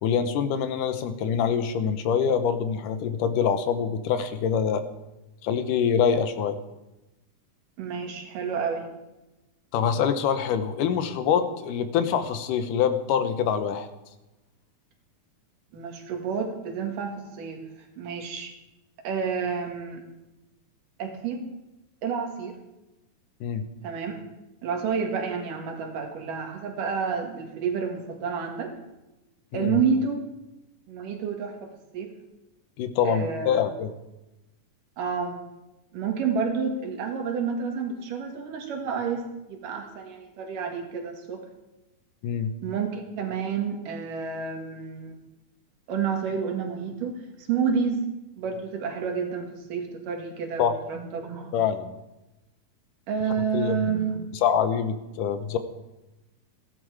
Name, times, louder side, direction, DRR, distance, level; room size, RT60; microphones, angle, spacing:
voice 1, 0.0-4.8 5.4-6.6 9.7-13.9 23.4-23.7 29.5-29.8 32.8-33.9 42.2-42.6 50.6-50.8 51.5-51.9 53.5-53.8 54.4-55.6, left 7 dB, 90° left, 10 dB, 2.5 m, -25 dB
voice 2, 7.8-8.8 15.7-17.6 18.0-18.5 19.0-20.0 21.0-21.4 22.0-22.6 23.8-24.2 24.6-28.7 29.5-30.2 30.9-32.1 33.0-33.7 35.0-35.4 35.9-39.2 39.5-41.4 42.6-45.2 45.9-47.2 47.5-48.0 48.4-51.5 53.1-54.2, right 6 dB, 90° right, 3 dB, 3.4 m, -29 dB
15.5 x 11.5 x 4.8 m, 0.99 s
omnidirectional pair, 3.7 m